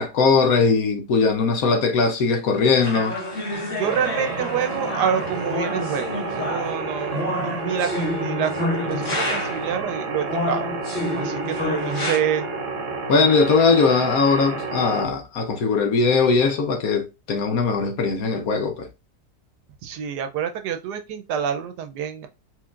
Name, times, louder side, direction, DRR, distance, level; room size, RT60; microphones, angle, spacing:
voice 1, 0.0-3.2 13.1-18.9, left 4 dB, 65° left, 1.1 m, -20 dB
sound 1, 2.8-9.7 10.3-12.2, left 1 dB, 40° left, 1.7 m, -29 dB
sound 2, 3.8-15.0, right 3 dB, 55° right, 1.1 m, -30 dB
voice 2, 3.8-10.7 11.1-12.5 19.8-22.3, right 8 dB, 75° right, 1.2 m, -27 dB
4.5 x 3.8 x 2.4 m
omnidirectional pair, 1.8 m